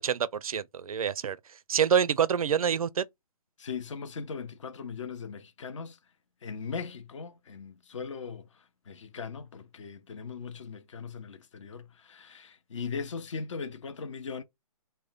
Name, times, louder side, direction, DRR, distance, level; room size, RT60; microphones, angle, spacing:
voice 1, 0.0-1.4 1.7-3.0, right 7 dB, 65° right, 0.4 m, -26 dB
voice 2, 3.6-6.0 6.4-14.4, left 5 dB, 50° left, 0.6 m, -39 dB
3.5 x 2.2 x 4.1 m
figure-of-eight pair, 140°, 20 cm